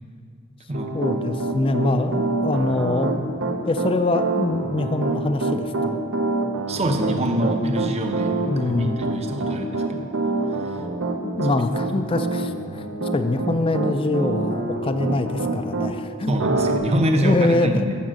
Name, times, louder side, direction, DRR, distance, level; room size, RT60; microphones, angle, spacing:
Piano, 0.7-15.9 16.4-16.8, right 3 dB, 70° right, 0.9 m, -26 dB
voice 1, 0.9-3.3 3.7-6.0 8.5-9.0 11.2-16.3 17.2-17.9, left 2 dB, 25° left, 9 dB, 0.4 m, -24 dB
voice 2, 6.7-10.1 10.7-10.8 11.9-12.0 16.3-18.0, right 1 dB, 35° right, 4 dB, 0.8 m, -25 dB
7.3 x 6.6 x 7.5 m, 2.4 s
head